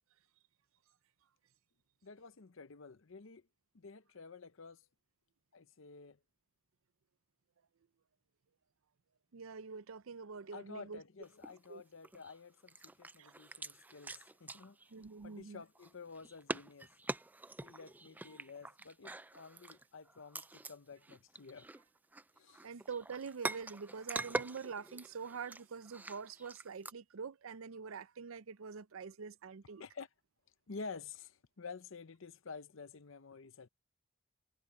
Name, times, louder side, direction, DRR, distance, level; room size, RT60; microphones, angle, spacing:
voice 1, 2.0-3.4 3.7-4.8 5.5-6.2 10.5-14.8 15.2-16.9 17.6-21.7 22.4-22.6 29.8-30.1 30.7-33.7, left 4 dB, 65° left, 0.7 m, -51 dB
voice 2, 9.3-11.0 11.7-11.8 13.2-13.3 14.9-15.6 22.6-29.8, right 5 dB, 75° right, 0.5 m, -45 dB
sound 1, 11.2-11.7 12.0-12.4 12.7-15.4 15.7-20.8 21.0-26.9, right 2 dB, 10° right, 0.3 m, -45 dB
head